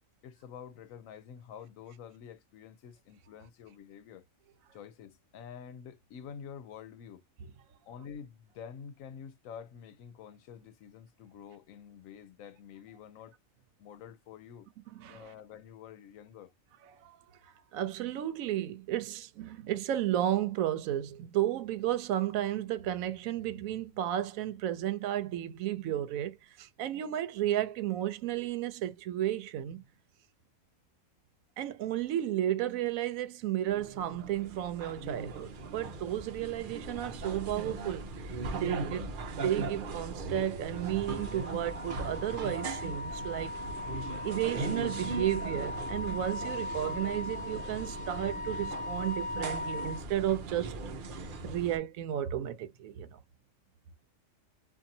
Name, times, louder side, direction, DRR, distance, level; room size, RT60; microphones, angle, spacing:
voice 1, 0.2-4.3 4.7-7.2 7.8-13.3 13.8-14.7 15.0-16.5, left 8 dB, 85° left, 1.0 m, -48 dB
voice 2, 14.9-15.3 17.0-17.1 17.4-29.8 31.6-38.1 38.5-43.6 44.2-50.7 51.2-53.2, right 12 dB, 90° right, 1.0 m, -33 dB
sound 1, 33.7-51.8, right 3 dB, 55° right, 0.6 m, -39 dB
Wind instrument woodwind instrument, 40.6-50.0, left 2 dB, 65° left, 1.1 m, -40 dB
2.7 x 2.5 x 2.6 m
omnidirectional pair, 1.4 m